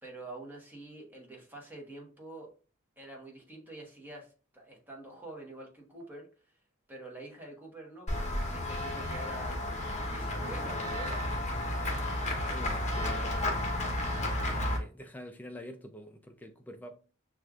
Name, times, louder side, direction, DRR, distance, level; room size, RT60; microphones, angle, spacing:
voice 1, 0.0-2.5 3.0-6.3 6.9-11.3, right 2 dB, 10° right, 1.0 m, -46 dB
Run / Walk footsteps / Bell, 8.1-14.8, left 1 dB, 35° left, 0.9 m, -32 dB
voice 2, 12.4-13.7 14.5-17.0, left 1 dB, 10° left, 0.3 m, -46 dB
6.3 x 2.4 x 2.4 m
head